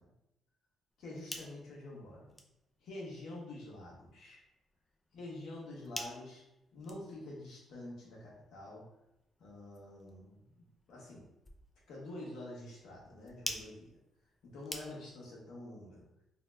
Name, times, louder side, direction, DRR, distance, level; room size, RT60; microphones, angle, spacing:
sound 1, 0.9-15.3, left 1 dB, 15° left, 0.4 m, -50 dB
voice 1, 1.0-2.3 2.8-4.4 5.1-6.4 6.7-8.8 9.4-11.2 11.9-13.9 14.4-16.0, left 1 dB, 80° left, -4 dB, 1.0 m, -47 dB
2.7 x 2.1 x 3.3 m, 0.87 s
cardioid pair, 90°, 0 cm